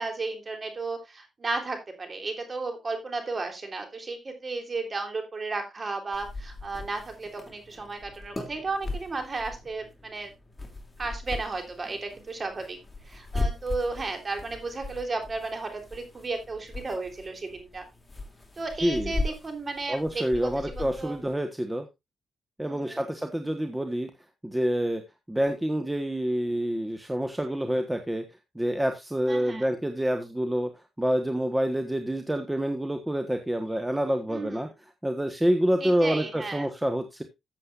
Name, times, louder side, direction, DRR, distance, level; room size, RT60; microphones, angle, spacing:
voice 1, 0.0-10.3 11.0-12.8 13.0-17.8 18.6-21.2 22.6-23.1 29.3-29.7 34.3-34.7 35.8-36.7, right 3 dB, 35° right, 5 dB, 3.4 m, -34 dB
sound 1, 6.1-21.3, left 2 dB, 15° left, 2.7 m, -38 dB
voice 2, 18.8-19.1 19.9-21.9 22.6-24.1 24.4-25.0 25.3-28.2 28.5-30.7 31.0-34.7 35.0-37.2, equal, 10° right, 6 dB, 1.3 m, -27 dB
14.5 x 7.6 x 2.5 m, 0.22 s
cardioid pair, 90°, 0 cm